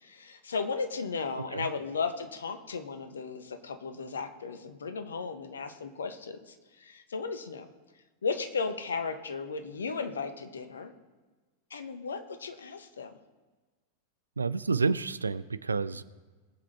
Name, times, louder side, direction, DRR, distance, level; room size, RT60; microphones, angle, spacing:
voice 1, 0.0-7.7 8.2-10.9 11.7-13.1, left 4 dB, 70° left, 8 dB, 1.2 m, -35 dB
voice 2, 14.4-16.0, right 4 dB, 75° right, 16 dB, 0.5 m, -29 dB
21.0 x 7.5 x 4.3 m, 1.3 s
figure-of-eight pair, 90°, 0 cm